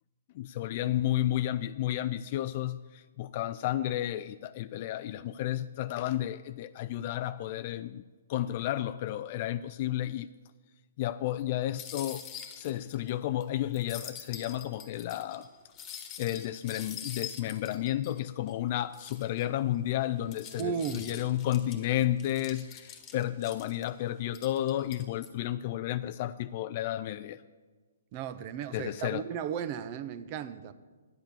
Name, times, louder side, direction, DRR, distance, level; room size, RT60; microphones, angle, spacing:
voice 1, 0.3-8.0 8.3-10.3 11.0-12.2 12.5-15.5 16.2-27.4 28.7-29.2, left 13 dB, 45° left, 0.3 m, -32 dB
sound 1, 11.8-13.1 13.4-13.5 13.7-18.5 18.9-19.5 20.0-23.9 24.3-25.3, left 8 dB, 25° left, 1.5 m, -45 dB
voice 2, 20.6-21.1 28.1-30.7, right 8 dB, 35° right, 0.7 m, -35 dB
10.5 x 8.0 x 7.1 m
hypercardioid pair, 140°, 0 cm